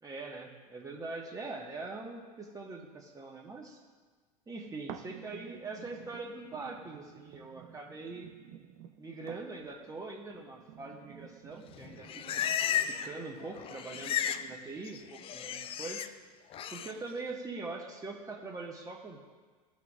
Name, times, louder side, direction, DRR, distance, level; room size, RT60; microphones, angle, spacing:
voice 1, 0.0-3.8 4.5-8.3 9.0-12.4 12.9-16.1 16.7-19.2, right 3 dB, 15° right, -1 dB, 1.4 m, -43 dB
sound 1, 4.9-14.9 15.4-15.5, right 10 dB, 50° right, 0.7 m, -52 dB
Livestock farm animals working animals, 11.7-13.2 13.4-14.5 14.8-16.1 16.5-16.9, left 9 dB, 25° left, 0.4 m, -34 dB
16.0 x 6.0 x 2.4 m, 1.4 s
figure-of-eight pair, 85°, 21 cm